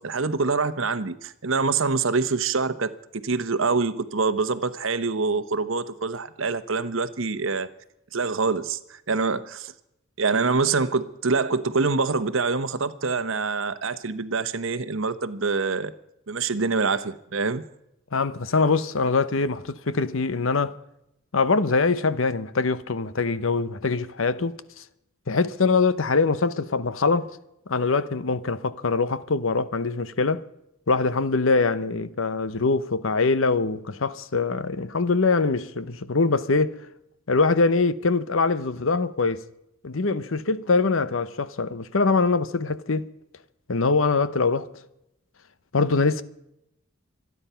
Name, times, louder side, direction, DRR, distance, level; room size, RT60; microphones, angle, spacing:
voice 1, 0.0-7.7 8.1-9.7 10.2-15.9 16.3-17.6, right 4 dB, 65° right, 1.0 m, -25 dB
voice 2, 18.1-20.7 21.3-24.8 25.3-27.4 27.7-30.4 30.9-36.8 37.3-39.4 39.8-43.1 43.7-44.7 45.7-46.2, left 4 dB, 65° left, 0.8 m, -23 dB
26.0 x 9.7 x 5.7 m
head